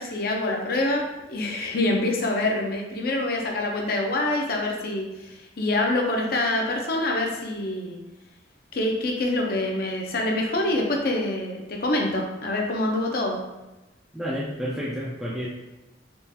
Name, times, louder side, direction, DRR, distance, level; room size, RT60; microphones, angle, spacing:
voice 1, 0.0-8.0 8.7-13.4, left 2 dB, 55° left, 0 dB, 0.6 m, -26 dB
voice 2, 14.1-15.5, equal, 5° right, -7 dB, 0.3 m, -30 dB
3.7 x 2.4 x 2.7 m, 1.0 s
head